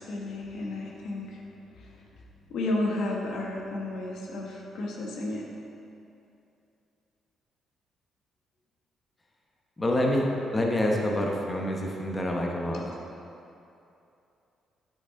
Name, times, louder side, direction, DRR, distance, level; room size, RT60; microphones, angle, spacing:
voice 1, 0.0-1.4 1.8-2.0 2.5-5.5 12.7-12.8, left 2 dB, 75° left, -2 dB, 1.2 m, -32 dB
voice 2, 9.8-12.8, left 1 dB, 20° left, -1 dB, 0.9 m, -27 dB
8.1 x 6.0 x 3.7 m, 2.7 s
cardioid pair, 90°, 0 cm